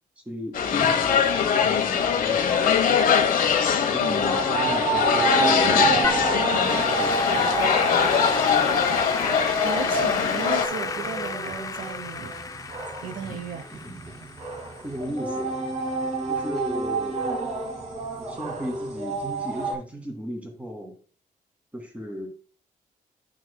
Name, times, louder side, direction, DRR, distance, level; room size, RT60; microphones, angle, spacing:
voice 1, 0.3-3.0 3.9-7.6 13.3-13.4 13.7-14.0 14.8-15.5 16.3-17.2 18.2-21.0 21.7-22.3, equal, 10° right, 2.1 m, -36 dB
sound 1, 0.5-10.7, left 7 dB, 80° left, 1.1 m, -22 dB
voice 2, 4.0-4.4 9.6-12.3 13.0-13.7, right 6 dB, 70° right, 0.9 m, -35 dB
sound 2, 4.3-19.7, right 4 dB, 55° right, 2.0 m, -29 dB
Applause / Keyboard (musical), 6.0-15.4, left 5 dB, 25° left, 0.4 m, -33 dB
11.5 x 6.1 x 2.3 m
wide cardioid pair, 160°, 14 cm